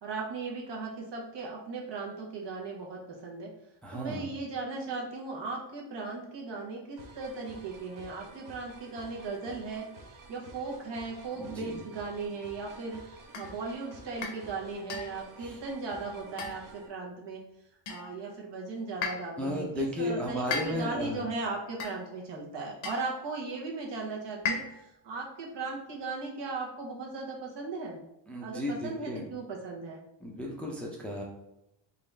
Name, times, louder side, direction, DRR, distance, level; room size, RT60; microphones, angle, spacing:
voice 1, 0.0-3.5 3.9-9.9 10.3-17.4 17.9-28.0 28.4-30.0, right 3 dB, 60° right, -1 dB, 1.0 m, -37 dB
voice 2, 3.8-4.3 11.4-11.8 15.4-15.6 19.4-21.2 28.3-29.3 30.2-31.2, left 1 dB, 5° left, -1 dB, 0.4 m, -34 dB
sound 1, 7.0-16.9, right 3 dB, 45° right, 0.6 m, -51 dB
sound 2, 13.3-13.6 14.2-14.5 14.9-15.3 16.4-16.8 17.9-18.2 19.0-19.4 20.5-21.0 21.8-22.2 22.8-23.1 24.4-25.0, left 5 dB, 70° left, 0.7 m, -36 dB
3.9 x 2.5 x 3.2 m, 0.85 s
wide cardioid pair, 145°, 47 cm